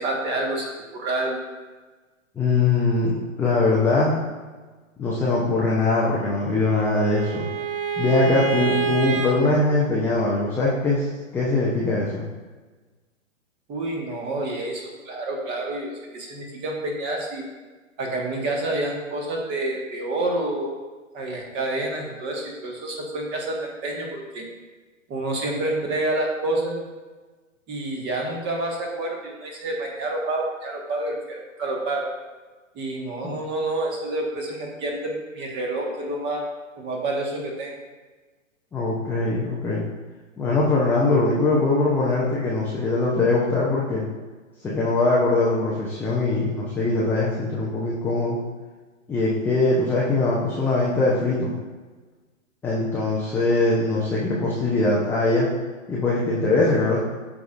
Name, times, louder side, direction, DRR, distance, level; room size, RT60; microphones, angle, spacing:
voice 1, 0.0-1.4 13.7-17.4 18.0-20.8 21.1-24.4 25.1-26.8 27.7-32.0 32.7-36.4 36.8-37.7, right 2 dB, 25° right, 0 dB, 1.6 m, -28 dB
voice 2, 2.4-4.2 5.0-7.5 8.0-12.2 38.7-39.8 40.4-44.1 44.6-48.4 49.1-51.6 52.6-55.5 55.9-57.1, left 2 dB, 5° left, -6 dB, 0.5 m, -22 dB
Bowed string instrument, 6.2-9.3, right 5 dB, 45° right, 1.3 m, -27 dB
12.0 x 4.8 x 2.5 m, 1.3 s
hypercardioid pair, 125°, 40 cm